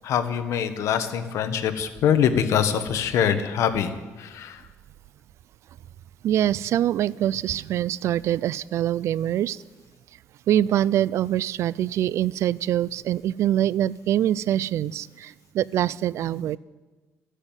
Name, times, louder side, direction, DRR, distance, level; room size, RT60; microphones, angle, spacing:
voice 1, 0.0-3.9 4.2-4.6, left 8 dB, 75° left, 9 dB, 1.3 m, -24 dB
voice 2, 6.2-9.6 10.5-16.6, right 11 dB, 65° right, 21 dB, 0.4 m, -24 dB
14.0 x 9.9 x 9.0 m, 1.3 s
cardioid pair, 130°, 5 cm